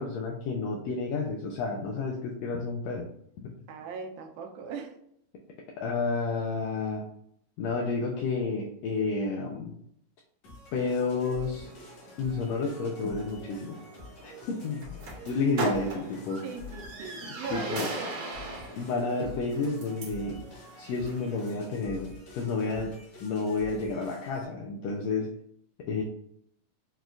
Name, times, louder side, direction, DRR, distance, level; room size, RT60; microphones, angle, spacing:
voice 1, 0.0-3.1 3.4-3.5 5.8-7.1 7.6-9.8 10.7-11.7 12.2-13.8 14.2-14.8 15.3-16.4 17.5-17.9 18.8-20.4 20.8-23.0 23.2-25.3 25.8-26.0, left 4 dB, 85° left, 1 dB, 1.5 m, -30 dB
voice 2, 3.7-5.0 16.4-18.2, right 5 dB, 85° right, 4 dB, 2.0 m, -40 dB
sound 1, 10.4-24.4, left 4 dB, 65° left, 2.1 m, -48 dB
sound 2, 11.6-21.6, right 3 dB, 65° right, 1.4 m, -40 dB
6.1 x 2.3 x 2.5 m, 0.71 s
omnidirectional pair, 3.5 m